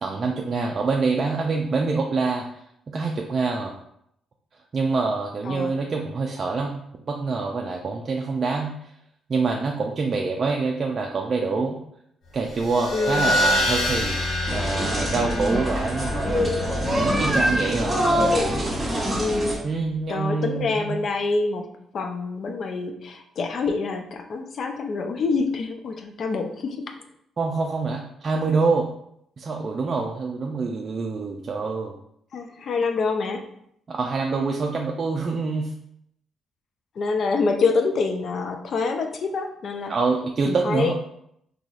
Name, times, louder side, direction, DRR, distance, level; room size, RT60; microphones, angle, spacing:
voice 1, 0.0-2.4 2.9-3.7 4.7-6.8 7.1-8.7 9.3-11.8 12.3-14.2 14.5-16.5 16.9-17.9 19.6-21.0 27.4-28.8 29.4-31.9 33.9-35.7 39.9-40.9, right 4 dB, 40° right, 0 dB, 0.4 m, -25 dB
sound 1, 12.4-19.5, left 1 dB, 85° left, 0.8 m, -27 dB
voice 2, 12.9-13.4 19.1-19.6 20.1-21.7 21.9-27.0 32.3-33.4 37.0-39.9 40.4-40.9, left 4 dB, 55° left, 6 dB, 0.4 m, -26 dB
sound 2, 14.5-19.5, equal, 20° right, 1.1 m, -24 dB
3.9 x 2.9 x 2.4 m, 0.73 s
cardioid pair, 90°, 0 cm